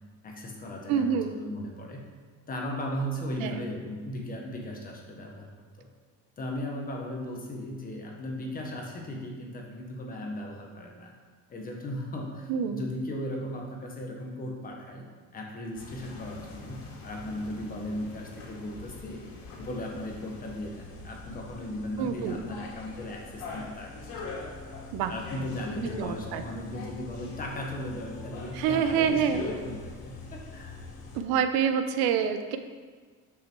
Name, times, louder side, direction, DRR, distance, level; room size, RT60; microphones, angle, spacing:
voice 1, 0.2-2.1 2.5-5.5 5.8-5.9 6.4-11.1 11.5-15.1 15.3-19.2 19.6-24.7 25.1-30.8, left 1 dB, 25° left, 0 dB, 1.3 m, -37 dB
voice 2, 0.9-1.4 3.4-3.6 12.5-12.8 22.0-22.4 24.9-25.1 25.8-26.4 28.5-29.4 31.1-32.6, right 7 dB, 85° right, 8 dB, 0.9 m, -27 dB
sound 1, 15.7-31.2, left 3 dB, 70° left, 2.4 m, -42 dB
13.0 x 6.0 x 4.7 m, 1.5 s
cardioid pair, 175°, 37 cm